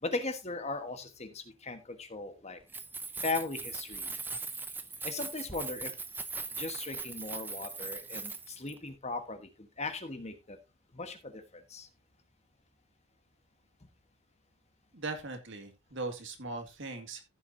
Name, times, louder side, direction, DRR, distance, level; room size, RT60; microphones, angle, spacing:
voice 1, 0.0-2.6 3.2-4.2 5.0-5.9 6.6-10.6 10.9-11.9, left 3 dB, 30° left, 1.2 m, -38 dB
Keys jangling, 2.6-8.7, right 4 dB, 10° right, 0.7 m, -40 dB
voice 2, 14.9-17.2, right 3 dB, 55° right, 2.1 m, -39 dB
15.0 x 7.0 x 2.7 m
head